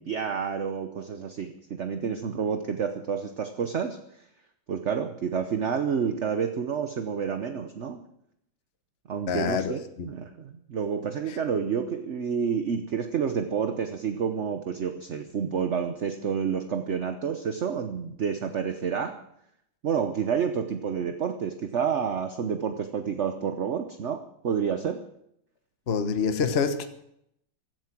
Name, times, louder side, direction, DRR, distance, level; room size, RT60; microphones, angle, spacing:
voice 1, 0.0-4.0 4.7-8.0 9.1-19.1 19.8-24.2 24.4-25.0, right 7 dB, 50° right, 7 dB, 0.9 m, -29 dB
voice 2, 9.3-10.1 11.3-11.4 25.9-26.9, left 6 dB, 35° left, 8 dB, 1.1 m, -27 dB
16.0 x 12.5 x 6.0 m, 0.75 s
omnidirectional pair, 2.3 m